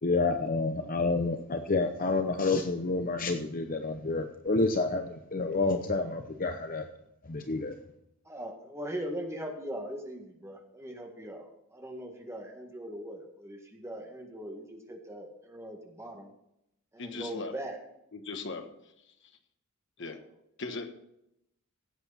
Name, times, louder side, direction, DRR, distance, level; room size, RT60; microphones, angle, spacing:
voice 1, 0.0-6.9 7.2-7.8, left 3 dB, 40° left, 7 dB, 0.7 m, -29 dB
voice 2, 8.2-16.3 16.9-17.8, right 1 dB, 15° right, 2 dB, 1.8 m, -40 dB
voice 3, 17.0-17.5 18.1-18.7 19.2-19.3 20.0-20.2 20.6-20.9, left 3 dB, 55° left, 7 dB, 1.3 m, -38 dB
16.5 x 8.1 x 4.2 m, 0.81 s
head